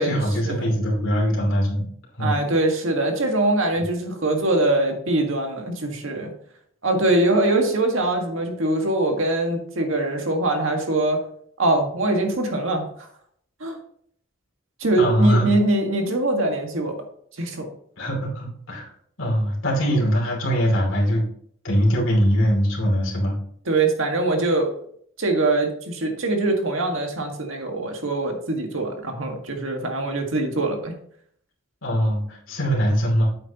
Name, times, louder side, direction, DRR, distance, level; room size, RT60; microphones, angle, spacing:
voice 1, 0.0-1.9 2.2-2.3 3.8-3.9 15.0-15.6 18.0-18.9 19.2-21.2 21.6-23.4 31.8-33.3, equal, 75° left, -2 dB, 2.9 m, -22 dB
voice 2, 2.2-6.3 6.8-11.2 11.6-12.9 13.6-13.8 14.8-17.0 17.4-17.7 23.7-24.7 25.2-30.9, right 2 dB, 75° right, 3 dB, 1.7 m, -23 dB
9.3 x 7.7 x 2.9 m, 0.64 s
head